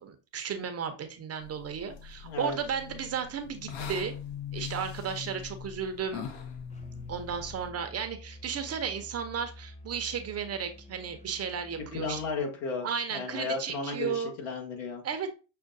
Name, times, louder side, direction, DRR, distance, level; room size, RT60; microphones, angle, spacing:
voice 1, 0.0-4.2 4.5-6.2 7.1-12.2 12.8-14.3 15.0-15.3, right 7 dB, 30° right, 7 dB, 0.6 m, -34 dB
sound 1, 1.4-7.7, left 7 dB, 55° left, 0.8 m, -41 dB
voice 2, 2.2-2.6 11.9-15.0, left 4 dB, 75° left, 2 dB, 1.4 m, -34 dB
Musical instrument, 6.7-12.4, left 1 dB, 15° left, 0.5 m, -49 dB
6.4 x 2.2 x 2.5 m, 0.33 s
supercardioid pair, 100°, 48 cm